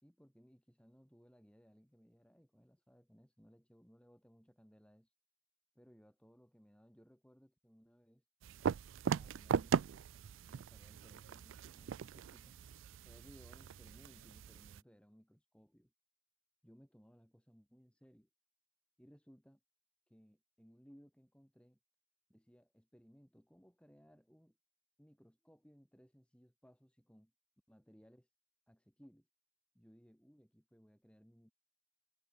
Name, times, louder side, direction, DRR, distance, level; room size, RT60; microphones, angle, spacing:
voice 1, 0.0-5.1 5.7-8.2 9.2-9.8 10.5-12.6 13.0-15.9 16.6-18.3 19.0-19.6 20.1-21.8 22.3-24.6 25.0-27.3 27.7-28.3 28.7-29.3 29.7-31.5, equal, 5° left, 4.3 m, -64 dB
sound 1, 8.4-14.8, right 7 dB, 75° right, 0.3 m, -39 dB
head